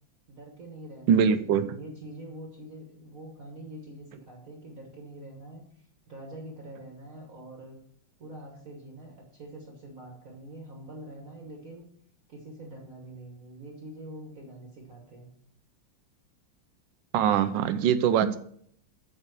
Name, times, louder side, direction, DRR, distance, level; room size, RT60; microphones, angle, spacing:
voice 1, 0.3-7.8 8.2-11.9 12.3-15.3, right 1 dB, 45° right, 0 dB, 1.7 m, -45 dB
voice 2, 1.1-1.6 17.1-18.4, right 8 dB, 75° right, 10 dB, 1.3 m, -22 dB
7.4 x 5.1 x 6.4 m, 0.63 s
omnidirectional pair, 2.1 m